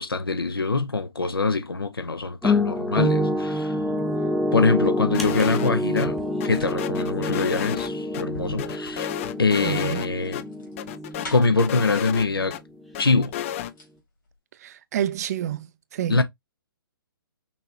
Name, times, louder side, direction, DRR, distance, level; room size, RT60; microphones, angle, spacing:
voice 1, 0.0-3.8 4.5-6.2 6.4-9.1 9.4-10.4 11.3-12.6 13.0-13.3 16.1-16.2, left 3 dB, 80° left, 0.8 m, -24 dB
sound 1, 2.4-12.5 12.8-13.0, left 1 dB, ahead, 0.8 m, -27 dB
sound 2, 4.8-5.6 6.4-11.7 12.7-12.8 13.2-14.0 14.3-14.4, left 2 dB, 65° left, 2.7 m, -44 dB
sound 3, 5.1-5.7 6.0-6.1 6.4-8.2 8.6-10.1 10.3-10.4 10.8-12.6 12.9-13.7, left 11 dB, 35° left, 0.4 m, -32 dB
voice 2, 9.6-10.1 14.6-16.2, right 11 dB, 45° right, 0.4 m, -29 dB
5.9 x 2.9 x 2.8 m
figure-of-eight pair, 125°, 12 cm